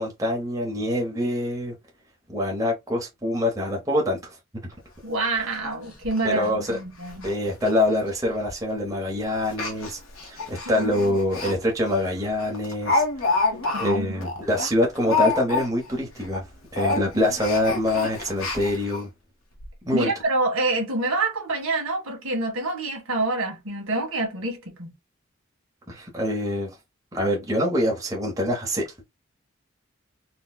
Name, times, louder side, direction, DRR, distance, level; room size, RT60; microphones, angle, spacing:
voice 1, 0.0-1.7 2.3-4.2 5.3-5.4 6.2-6.8 7.2-10.0 10.3-13.4 13.7-16.4 16.7-19.1 19.8-20.1 25.9-26.7 27.1-29.0, left 1 dB, 15° right, 0.9 m, -25 dB
Speech, 4.7-4.8 5.2-5.3 5.6-5.7 6.0-6.2 6.6-6.8 7.1-7.3 7.6-7.7 8.5-8.7 9.5-11.5 11.9-12.0 12.4-15.9 16.2-16.4 16.7-19.0 19.6-19.7 20.0-20.1, left 3 dB, 80° left, 1.2 m, -28 dB
voice 2, 5.0-7.3 10.6-11.2 13.5-14.1 19.9-24.9, right 2 dB, 80° right, 1.6 m, -27 dB
4.2 x 2.2 x 2.3 m
head